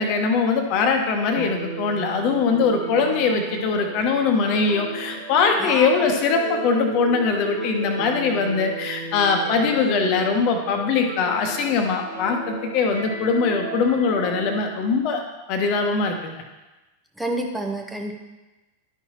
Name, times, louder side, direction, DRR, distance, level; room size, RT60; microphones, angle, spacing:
voice 1, 0.0-15.2 15.5-16.3, left 5 dB, 40° left, 4 dB, 1.1 m, -22 dB
sound 1, 1.3-14.6, right 3 dB, 80° right, 2.1 m, -34 dB
voice 2, 17.2-18.1, right 2 dB, 5° right, 1 dB, 0.8 m, -28 dB
11.5 x 5.7 x 3.0 m, 1.1 s
figure-of-eight pair, 90°, 0 cm